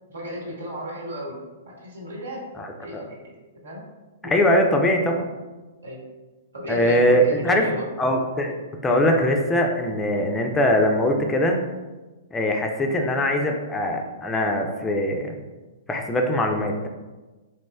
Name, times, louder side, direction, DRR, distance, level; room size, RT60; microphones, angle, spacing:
voice 1, 0.1-1.4 1.7-2.5 2.8-3.3 3.6-3.9 4.2-4.3 5.8-6.0 6.5-7.9, equal, 80° right, -3 dB, 1.0 m, -34 dB
voice 2, 4.2-5.3 6.7-7.7 8.0-8.6 8.8-11.6 12.3-15.3 15.9-16.9, left 1 dB, 15° left, 3 dB, 0.4 m, -21 dB
4.0 x 2.9 x 2.2 m, 1.2 s
figure-of-eight pair, 115°, 0 cm